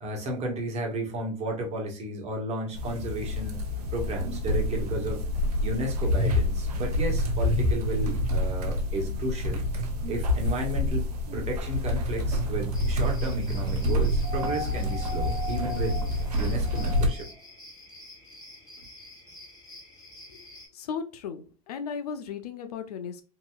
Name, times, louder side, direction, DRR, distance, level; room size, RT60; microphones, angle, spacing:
voice 1, 0.0-3.6 3.9-5.2 5.6-9.6 10.1-11.1 11.3-16.0 16.4-17.3, right 1 dB, 35° right, 1 dB, 1.2 m, -33 dB
sound 1, 2.7-17.1, left 1 dB, 90° right, 0.7 m, -27 dB
sound 2, 12.7-20.7, left 1 dB, 20° left, 1.6 m, -48 dB
sound 3, 14.2-17.4 18.8-18.9, left 1 dB, 15° right, 1.1 m, -38 dB
voice 2, 20.7-23.2, left 6 dB, 80° left, 8 dB, 0.6 m, -36 dB
2.9 x 2.7 x 2.3 m, 0.35 s
hypercardioid pair, 100°, 20 cm